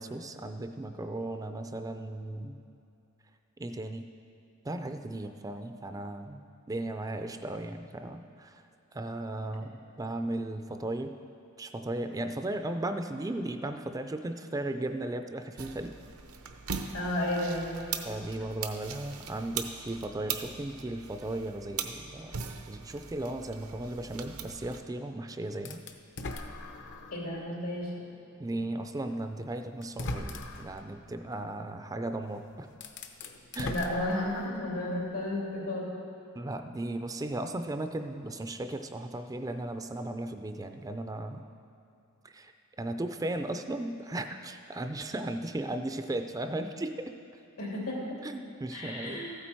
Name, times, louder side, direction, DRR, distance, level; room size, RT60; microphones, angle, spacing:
voice 1, 0.0-2.6 3.6-4.1 4.6-6.4 6.7-8.6 8.9-11.1 11.6-15.9 18.0-22.4 22.7-25.8 28.4-32.7 33.5-33.8 36.4-41.5 42.2-42.5 42.8-47.1 48.2-49.3, right 1 dB, 15° right, 7 dB, 0.4 m, -36 dB
sound 1, 15.6-24.8, right 6 dB, 80° right, 0.8 m, -40 dB
voice 2, 16.9-17.7 27.1-28.0 33.6-35.9 47.6-48.0 48.7-49.4, left 1 dB, 85° left, -4 dB, 3.1 m, -32 dB
sound 2, 25.6-27.3 27.8-27.9 29.1-29.2 29.8-30.8 32.2-32.3 32.7-34.7, left 2 dB, 55° left, 0.8 m, -39 dB
14.5 x 8.5 x 4.5 m, 2.7 s
head